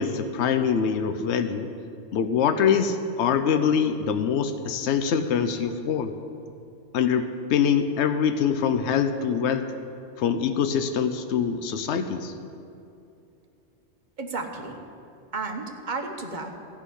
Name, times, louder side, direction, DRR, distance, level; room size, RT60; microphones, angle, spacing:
voice 1, 0.0-1.7 2.1-6.1 6.9-9.7 10.2-12.3, left 7 dB, 80° left, 9 dB, 0.9 m, -24 dB
voice 2, 14.2-14.8 15.3-16.5, right 3 dB, 45° right, 3 dB, 1.2 m, -32 dB
14.0 x 6.0 x 9.9 m, 2.6 s
omnidirectional pair, 1.2 m